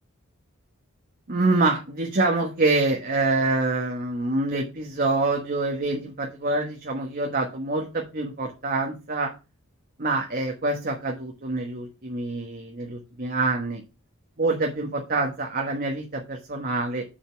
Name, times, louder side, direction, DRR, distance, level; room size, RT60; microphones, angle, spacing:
voice 1, 1.3-9.3 10.0-13.8 14.4-17.0, right 2 dB, 45° right, 1 dB, 1.4 m, -26 dB
7.1 x 5.6 x 5.7 m, 0.30 s
head